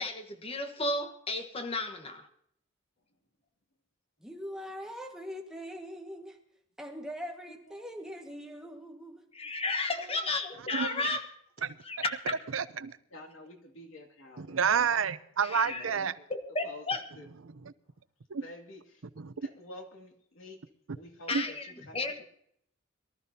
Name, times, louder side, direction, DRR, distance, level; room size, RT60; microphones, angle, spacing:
voice 1, 0.0-2.3 9.3-11.3 11.8-12.3 15.4-15.8 16.3-17.0 21.3-22.2, left 2 dB, 30° left, 6 dB, 1.3 m, -33 dB
voice 2, 4.2-6.4 6.8-9.2, equal, 5° right, 2 dB, 1.6 m, -42 dB
voice 3, 7.5-7.8 8.2-8.3 9.9-10.3 13.1-14.6 15.6-16.3 16.6-16.8 17.1-17.3 18.3-19.0 19.4-20.6 20.9-22.2, left 1 dB, 80° left, 1 dB, 2.6 m, -49 dB
voice 4, 10.7-11.0 11.6-11.7 12.5-13.0 14.4-16.1 18.3-18.4 19.2-19.3 21.3-21.5, right 6 dB, 80° right, 14 dB, 0.7 m, -29 dB
23.0 x 13.5 x 2.8 m, 0.71 s
head